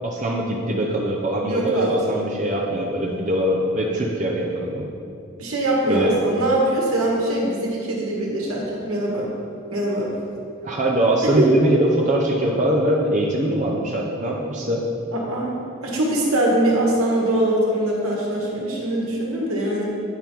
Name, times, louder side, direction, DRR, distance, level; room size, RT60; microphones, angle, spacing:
voice 1, 0.0-4.9 5.9-6.2 10.6-14.8, right 1 dB, 35° right, -3 dB, 0.7 m, -22 dB
voice 2, 1.5-2.2 5.4-9.3 9.7-10.1 11.4-11.5 15.1-15.6 15.8-19.9, right 1 dB, 80° right, -3 dB, 1.8 m, -22 dB
9.2 x 5.2 x 4.6 m, 2.5 s
head